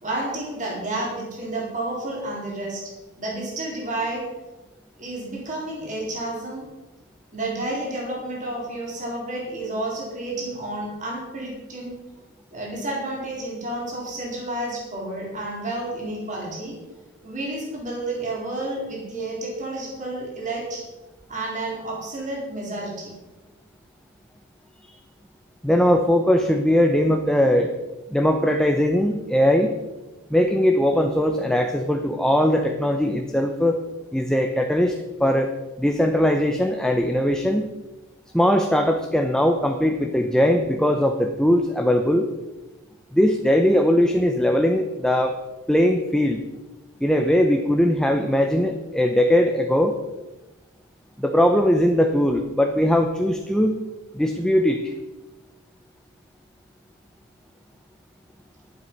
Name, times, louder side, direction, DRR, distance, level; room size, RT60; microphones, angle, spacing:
voice 1, 0.0-4.3 5.0-6.7 7.3-11.9 12.5-16.8 17.2-20.8 21.3-23.1, right 2 dB, 35° right, -3 dB, 4.0 m, -30 dB
voice 2, 25.6-27.7 28.1-29.7 30.3-33.8 34.1-34.9 35.2-35.5 35.8-37.7 38.3-42.3 43.1-45.4 45.7-46.4 47.0-49.9 51.2-53.8 54.1-54.9, equal, 5° left, 4 dB, 0.7 m, -20 dB
12.0 x 11.0 x 5.5 m, 1.1 s
head